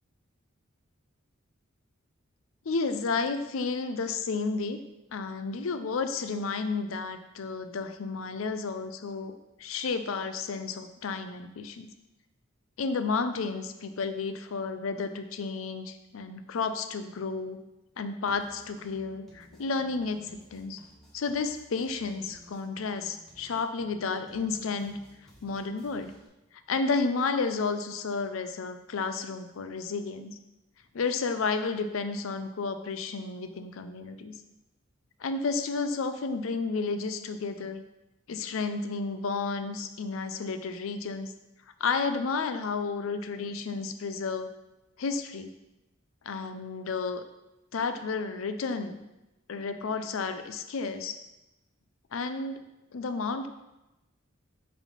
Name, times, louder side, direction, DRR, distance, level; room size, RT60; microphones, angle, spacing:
voice 1, 2.7-4.8 5.1-9.3 9.6-11.9 12.8-17.6 18.0-20.2 20.5-20.8 21.1-25.0 25.4-26.1 26.7-30.4 30.9-34.3 35.2-37.8 38.3-41.3 41.8-44.5 45.0-45.5 46.2-47.2 47.7-49.0 49.5-51.2 52.1-52.6 52.9-53.5, left 4 dB, 80° left, 9 dB, 0.5 m, -31 dB
sound 1, 18.3-26.3, left 1 dB, ahead, 1.3 m, -56 dB
4.9 x 3.5 x 5.4 m, 0.97 s
head